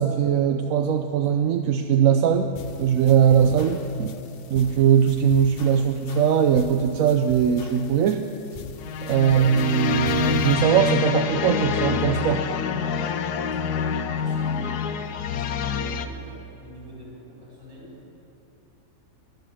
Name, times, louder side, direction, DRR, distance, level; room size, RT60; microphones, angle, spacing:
voice 1, 0.0-4.2 4.5-8.3 9.0-12.5, right 8 dB, 70° right, 6 dB, 0.9 m, -20 dB
sound 1, 2.5-10.5, left 7 dB, 60° left, 0.6 m, -43 dB
sound 2, 8.8-16.1, left 6 dB, 75° left, 1.3 m, -26 dB
voice 2, 14.2-15.0 15.4-18.0, right 1 dB, 40° right, -5 dB, 5.0 m, -44 dB
23.5 x 8.0 x 7.6 m, 3.0 s
omnidirectional pair, 1.7 m